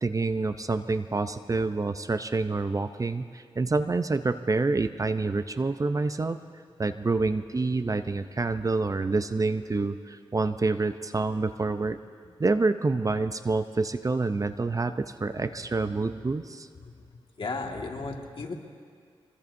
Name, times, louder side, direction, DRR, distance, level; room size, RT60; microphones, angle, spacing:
voice 1, 0.0-6.4 6.8-12.0 12.4-16.7, right 3 dB, 35° right, 10 dB, 0.6 m, -27 dB
voice 2, 17.4-18.5, left 3 dB, 55° left, 1 dB, 1.9 m, -35 dB
25.5 x 21.0 x 2.7 m, 2.1 s
cardioid pair, 55°, 10 cm